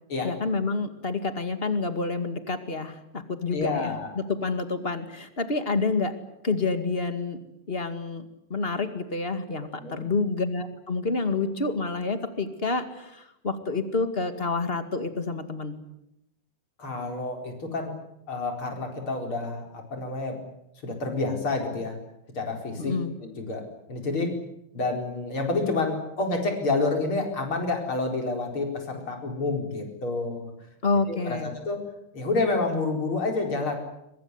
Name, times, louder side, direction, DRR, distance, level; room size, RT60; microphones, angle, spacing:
voice 1, 0.2-6.1 6.4-7.4 7.7-15.8 22.8-23.1 30.8-31.5, left 3 dB, 25° left, 9 dB, 2.3 m, -28 dB
voice 2, 3.5-4.1 9.8-10.0 16.8-18.0 18.3-20.4 20.8-22.0 22.4-23.6 23.9-24.4 24.7-30.5 31.1-31.8 32.1-33.8, left 3 dB, 75° left, 3 dB, 5.4 m, -29 dB
23.0 x 22.0 x 9.8 m, 0.83 s
omnidirectional pair, 2.3 m